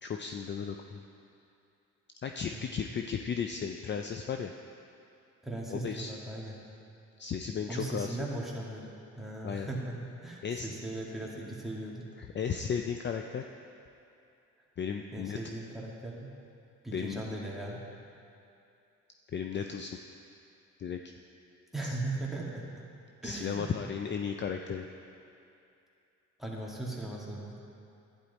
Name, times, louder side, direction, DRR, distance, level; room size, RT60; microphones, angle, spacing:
voice 1, 0.0-1.0 2.2-4.5 5.7-6.1 7.2-8.2 9.4-9.7 10.4-10.7 12.2-13.5 14.8-15.4 16.9-17.2 19.3-20.0 20.8-21.0 21.8-22.0 23.2-24.9, left 7 dB, 40° left, 5 dB, 0.5 m, -35 dB
voice 2, 2.5-2.9 5.4-6.6 7.7-12.0 15.1-16.3 16.8-17.8 21.7-22.9 23.2-23.8 26.4-27.6, right 2 dB, ahead, -4 dB, 2.2 m, -38 dB
11.5 x 10.5 x 4.1 m, 2.6 s
cardioid pair, 90°, 30 cm